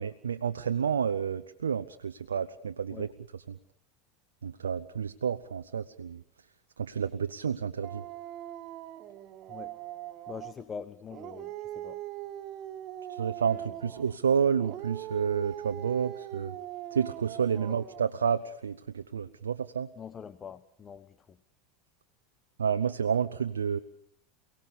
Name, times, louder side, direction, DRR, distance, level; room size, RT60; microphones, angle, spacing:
voice 1, 0.0-3.1 3.5-3.6 4.4-6.2 6.8-8.0 13.1-16.5 16.9-19.9 22.6-23.8, right 7 dB, 85° right, 0.8 m, -30 dB
Dog, 7.8-10.6 11.1-14.2 14.6-18.1, right 13 dB, 50° right, 1.3 m, -41 dB
voice 2, 9.5-9.8 10.3-12.0 13.8-13.9 17.7-17.8 20.0-21.4, left 6 dB, 30° left, 1.1 m, -44 dB
29.0 x 18.0 x 7.1 m
hypercardioid pair, 90°, 0 cm